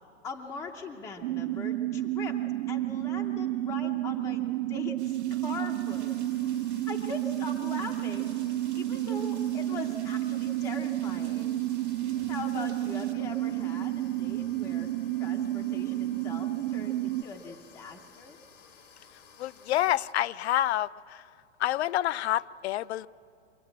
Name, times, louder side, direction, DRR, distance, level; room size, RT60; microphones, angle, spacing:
voice 1, 0.2-2.4 2.7-6.1 6.9-8.3 8.8-11.5 12.0-14.9 15.2-18.4, left 4 dB, 10° left, 2 dB, 0.5 m, -41 dB
sound 1, 1.2-17.2, right 14 dB, 85° right, 0.6 m, -31 dB
sound 2, 5.0-13.1, right 13 dB, 65° right, 1.3 m, -54 dB
sound 3, 5.8-20.1, left 6 dB, 90° left, 2.2 m, -55 dB
voice 2, 19.4-21.3 21.6-23.1, left 13 dB, 65° left, 19 dB, 0.5 m, -28 dB
24.5 x 16.5 x 8.8 m, 2.6 s
supercardioid pair, 165°, 36 cm